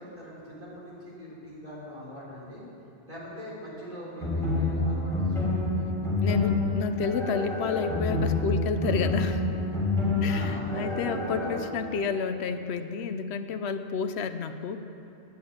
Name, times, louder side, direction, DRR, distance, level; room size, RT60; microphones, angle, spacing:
voice 1, 0.0-2.6 3.1-5.7 10.2-11.0, equal, 35° right, -7 dB, 4.4 m, -42 dB
sound 1, 4.2-11.6, left 2 dB, 5° left, 3.0 m, -28 dB
voice 2, 6.2-9.4 10.2-14.8, left 5 dB, 80° left, 9 dB, 0.9 m, -30 dB
10.5 x 10.5 x 8.5 m, 2.8 s
omnidirectional pair, 1.1 m